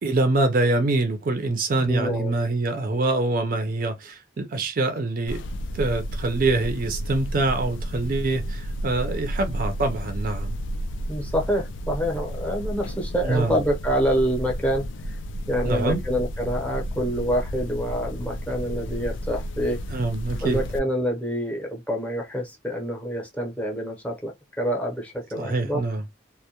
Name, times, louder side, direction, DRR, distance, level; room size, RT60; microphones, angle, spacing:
voice 1, 0.0-5.4 5.7-10.5 13.2-13.6 15.6-16.0 19.9-20.6 25.4-26.0, right 2 dB, 45° right, 0.4 m, -25 dB
voice 2, 1.8-2.3 11.1-15.2 15.5-19.8 20.4-25.8, equal, 5° left, 0.7 m, -27 dB
sound 1, 5.3-20.8, equal, 70° left, 0.3 m, -32 dB
2.2 x 2.0 x 2.7 m
head